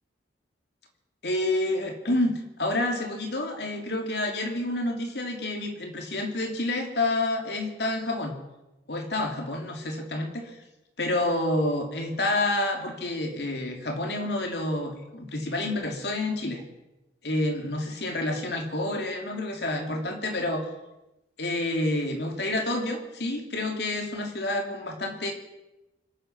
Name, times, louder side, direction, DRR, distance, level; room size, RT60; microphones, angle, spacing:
voice 1, 1.2-8.4 8.9-10.6 11.0-16.6 17.2-20.7 21.4-25.3, left 1 dB, 65° left, 3 dB, 3.0 m, -29 dB
26.0 x 8.9 x 6.1 m, 0.97 s
head